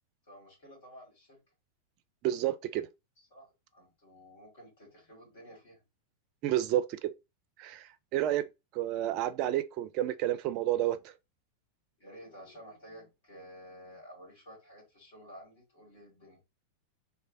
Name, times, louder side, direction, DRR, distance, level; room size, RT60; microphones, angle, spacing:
voice 1, 0.2-1.4 3.2-5.8 12.0-16.4, equal, 60° left, 2.0 m, -52 dB
voice 2, 2.2-2.9 6.4-7.1 7.6-8.4 8.7-11.0, right 13 dB, 40° right, 0.4 m, -30 dB
3.1 x 2.5 x 2.6 m
figure-of-eight pair, 90°, 0 cm